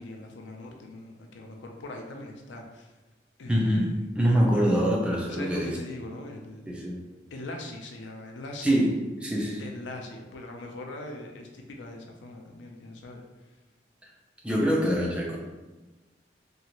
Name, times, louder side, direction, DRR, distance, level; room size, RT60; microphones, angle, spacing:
voice 1, 0.0-2.9 3.4-4.1 5.3-6.8 7.3-8.7 9.6-13.2, left 2 dB, 90° left, 2 dB, 0.5 m, -41 dB
voice 2, 3.5-3.9 4.2-5.8 6.7-7.0 8.6-8.9 9.2-9.7 14.4-15.4, equal, 5° right, -3 dB, 0.4 m, -24 dB
2.8 x 2.4 x 2.9 m, 1.2 s
head